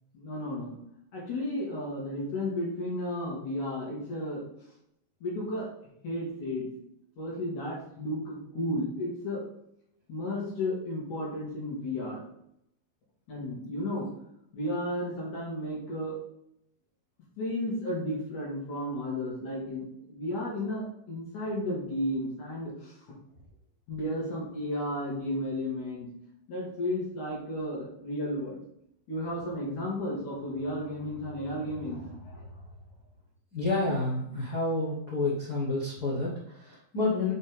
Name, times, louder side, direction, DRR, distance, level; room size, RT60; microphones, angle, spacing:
voice 1, 0.1-0.8 1.1-4.4 5.2-5.7 6.0-6.7 7.2-9.4 10.1-12.2 13.3-14.1 14.5-16.2 17.4-22.9 23.9-26.1 26.5-28.6 29.1-32.5, left 1 dB, 65° left, -5 dB, 3.2 m, -33 dB
voice 2, 33.5-37.3, left 2 dB, 90° left, -6 dB, 0.8 m, -29 dB
6.3 x 4.3 x 3.4 m, 0.76 s
omnidirectional pair, 3.9 m